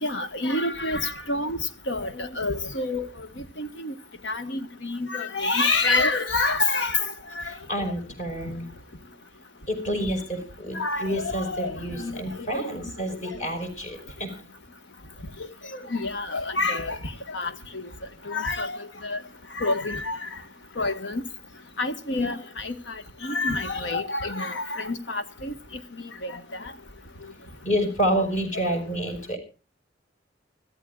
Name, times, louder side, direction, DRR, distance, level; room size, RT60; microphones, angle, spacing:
voice 1, 0.0-1.6 1.9-3.3 3.6-3.9 4.2-7.5 10.7-11.7 12.0-12.2 12.5-12.8 15.7-17.0 17.3-17.8 18.3-19.2 19.6-20.2 20.8-21.2 21.8-22.7 23.2-25.5 26.2-26.4, left 3 dB, 80° left, 1.4 m, -27 dB
voice 2, 7.5-8.7 9.7-14.3 27.6-29.4, equal, 45° left, 5.2 m, -29 dB
25.5 x 14.5 x 2.4 m
head